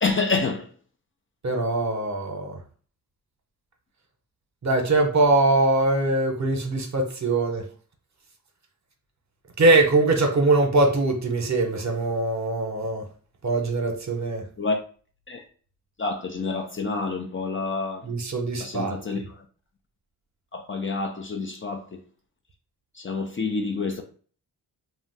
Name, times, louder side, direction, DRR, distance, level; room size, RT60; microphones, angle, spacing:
voice 1, 0.0-0.7 14.6-14.8 15.3-15.4 16.0-18.1 18.6-19.2 20.5-22.0 23.0-24.0, left 4 dB, 35° left, 0.4 m, -28 dB
voice 2, 1.4-2.6 4.6-7.6 9.6-13.0 13.4-14.4 18.0-19.2, right 2 dB, 45° right, 0.8 m, -22 dB
2.5 x 2.1 x 3.8 m
cardioid pair, 65°, 38 cm